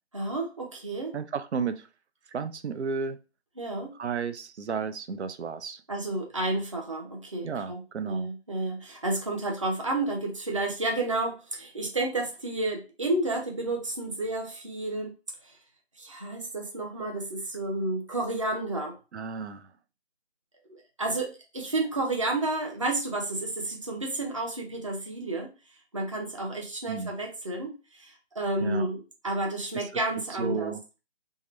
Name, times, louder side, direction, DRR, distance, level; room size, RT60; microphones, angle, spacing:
voice 1, 0.1-1.1 3.6-3.9 5.9-15.1 15.4-15.6 16.0-19.0 20.7-25.5 25.9-30.7, right 2 dB, 30° right, 1 dB, 0.5 m, -31 dB
voice 2, 1.1-1.9 2.3-3.2 4.0-5.8 7.4-8.3 19.1-19.7 26.9-27.1 28.6-28.9 29.7-29.8 30.4-30.8, right 5 dB, 90° right, 11 dB, 0.5 m, -33 dB
3.7 x 2.1 x 3.1 m, 0.31 s
figure-of-eight pair, 165°, 33 cm